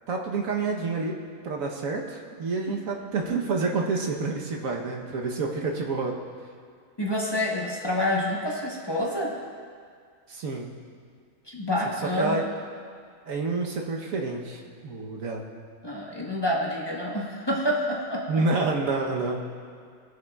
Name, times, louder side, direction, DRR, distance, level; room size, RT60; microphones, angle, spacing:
voice 1, 0.1-1.2 1.4-6.1 10.3-10.7 12.2-12.5 13.3-15.4 18.3-19.4, right 3 dB, 90° right, 0 dB, 1.4 m, -28 dB
voice 2, 7.0-9.3 11.5-12.4 15.8-18.3, left 1 dB, 20° left, -4 dB, 1.0 m, -28 dB
19.0 x 6.5 x 2.3 m, 2.1 s
omnidirectional pair, 1.4 m